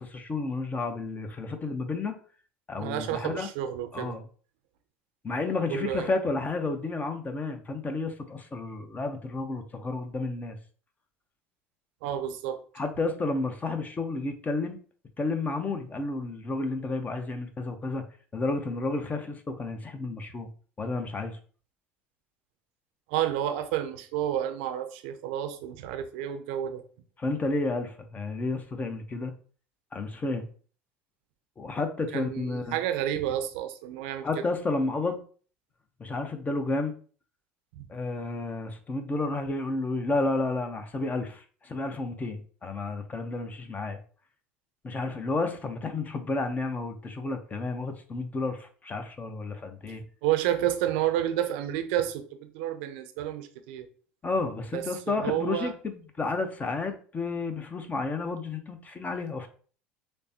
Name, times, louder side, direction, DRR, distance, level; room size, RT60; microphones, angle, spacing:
voice 1, 0.0-2.2 2.7-3.5 3.9-4.2 5.2-10.6 12.7-14.8 15.2-18.0 18.3-20.5 20.8-21.4 27.2-29.3 29.9-30.5 31.6-32.8 34.2-35.2 36.0-36.9 37.9-44.0 44.8-50.0 54.2-59.5, left 3 dB, 25° left, 7 dB, 0.9 m, -31 dB
voice 2, 2.8-4.2 5.7-6.1 12.0-12.6 23.1-26.8 32.1-34.3 37.7-37.8 50.2-52.2 52.5-53.9 54.7-55.7, right 11 dB, 70° right, 8 dB, 0.6 m, -30 dB
6.5 x 2.2 x 2.9 m, 0.42 s
hypercardioid pair, 70°, 6 cm